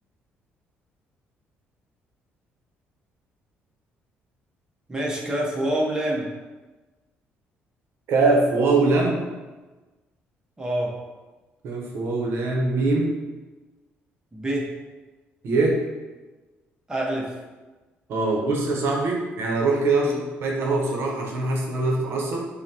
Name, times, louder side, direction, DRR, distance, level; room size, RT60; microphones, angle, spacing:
voice 1, 4.9-6.3 10.6-10.9 14.3-14.7 16.9-17.3 20.0-20.2, right 1 dB, 15° right, -2 dB, 0.7 m, -26 dB
voice 2, 8.1-9.2 11.6-13.1 15.4-15.8 18.1-22.5, right 3 dB, 65° right, -1 dB, 0.7 m, -22 dB
5.5 x 2.1 x 2.7 m, 1.2 s
cardioid pair, 95°, 4 cm